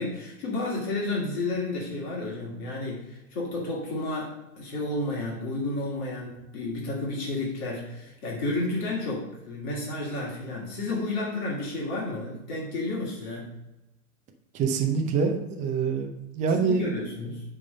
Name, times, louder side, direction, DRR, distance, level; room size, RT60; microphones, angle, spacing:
voice 1, 0.0-13.5 16.6-17.4, left 2 dB, 35° left, -4 dB, 2.4 m, -31 dB
voice 2, 14.5-16.1 16.4-16.9, right 5 dB, 15° right, 3 dB, 0.7 m, -25 dB
9.4 x 3.7 x 5.6 m, 0.94 s
hypercardioid pair, 135°, 45 cm